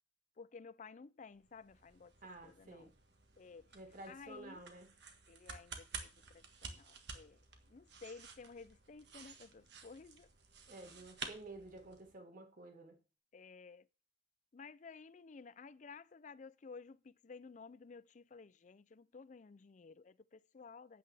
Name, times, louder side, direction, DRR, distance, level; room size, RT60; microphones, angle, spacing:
voice 1, 0.4-2.1 2.4-2.9 3.4-3.7 4.1-4.7 5.3-10.3 10.7-11.1 13.3-13.9 14.5-21.0, left 4 dB, 40° left, 0.4 m, -54 dB
sound 1, 1.3-12.1, right 5 dB, 65° right, 1.6 m, -52 dB
voice 2, 2.2-2.9 3.7-4.9 10.7-13.0, right 2 dB, 45° right, 1.7 m, -52 dB
12.0 x 8.7 x 3.4 m
head